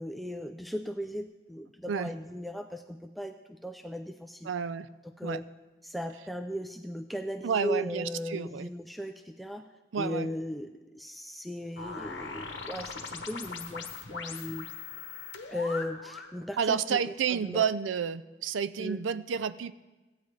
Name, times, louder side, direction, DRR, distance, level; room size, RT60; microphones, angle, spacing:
voice 1, 0.0-4.5 5.2-5.5 5.8-9.7 10.0-14.7 15.5-17.6 18.8-19.0, left 1 dB, ahead, 5 dB, 0.3 m, -37 dB
voice 2, 4.4-4.9 5.2-5.4 7.4-8.7 9.9-10.3 16.6-19.7, right 7 dB, 85° right, 15 dB, 0.4 m, -30 dB
sound 1, 11.8-16.4, left 5 dB, 70° left, 1.1 m, -40 dB
16.5 x 9.4 x 3.2 m, 1.2 s
head